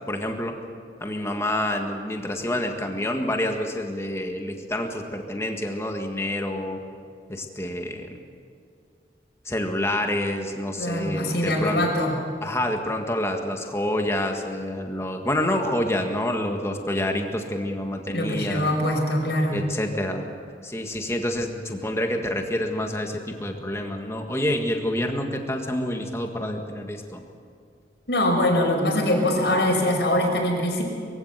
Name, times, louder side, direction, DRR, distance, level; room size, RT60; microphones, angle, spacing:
voice 1, 0.1-0.6 1.0-6.8 7.3-8.2 9.4-11.8 12.4-18.7 19.5-20.3 20.6-27.2, left 1 dB, 15° left, 3 dB, 1.8 m, -28 dB
voice 2, 10.8-12.1 18.1-19.6 28.1-30.8, left 1 dB, 75° left, 0 dB, 5.4 m, -23 dB
23.0 x 15.5 x 8.1 m, 2.2 s
head